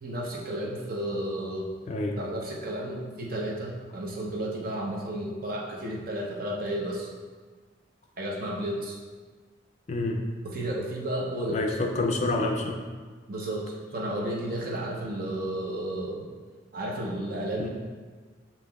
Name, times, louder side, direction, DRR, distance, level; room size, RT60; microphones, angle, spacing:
voice 1, 0.0-1.7 2.1-7.1 8.2-9.0 10.4-11.8 13.3-16.3 16.7-17.7, right 1 dB, 50° right, -3 dB, 0.8 m, -32 dB
voice 2, 1.9-2.2 9.9-10.2 11.5-12.8 17.6-17.7, left 2 dB, 35° left, 2 dB, 0.4 m, -27 dB
7.1 x 2.9 x 2.3 m, 1.4 s
head